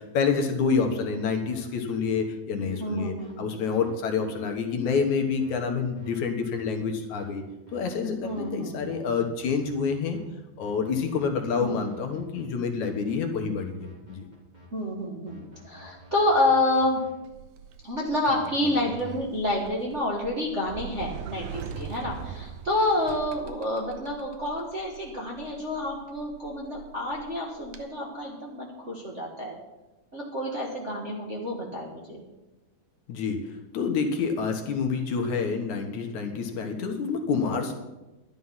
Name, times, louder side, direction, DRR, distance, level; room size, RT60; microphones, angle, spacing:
voice 1, 0.0-7.4 7.7-10.2 10.6-14.3 33.1-33.4 33.7-37.7, left 5 dB, 75° left, 4 dB, 2.6 m, -28 dB
sound 1, 0.8-1.1 1.4-1.7 2.0-2.2 2.6-2.8 3.2-3.3 3.7-3.9 4.3-4.5 4.8-5.0 5.4-5.6 6.0-6.2 6.5-6.7 7.1-7.3 7.7-7.9 8.2-8.5 8.8-9.0 9.4-10.2 10.6-12.4 12.8-14.7 15.3-17.1 18.3-19.1, left 1 dB, 15° right, 3.2 m, -51 dB
voice 2, 2.6-3.4 8.2-9.2 11.6-11.9 14.7-17.0 17.8-29.5 30.1-32.2 37.6-37.7, left 1 dB, 30° right, -3 dB, 1.4 m, -29 dB
Sliding door, 17.2-27.8, right 7 dB, 80° right, 2.3 m, -42 dB
11.5 x 11.0 x 5.7 m, 1.0 s
omnidirectional pair, 3.5 m